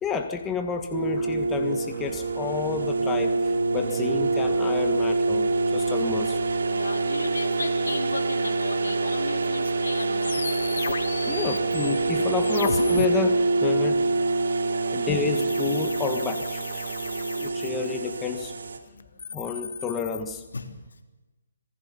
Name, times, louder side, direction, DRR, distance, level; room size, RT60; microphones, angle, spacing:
voice 1, 0.0-6.4 11.3-14.0 14.9-16.9 17.4-18.5 19.3-20.4, left 6 dB, 10° left, 5 dB, 1.6 m, -30 dB
sound 1, 0.9-18.8, right 3 dB, 75° right, 2.9 m, -26 dB
voice 2, 6.7-10.6 14.5-14.8 16.9-17.0 18.8-19.4 20.5-20.7, left 3 dB, 85° left, 3 dB, 3.9 m, -36 dB
sound 2, 10.2-13.1 15.4-18.2 19.0-20.2, left 5 dB, 65° left, 1.1 m, -35 dB
26.5 x 19.5 x 5.5 m, 1.1 s
hypercardioid pair, 155°, 0 cm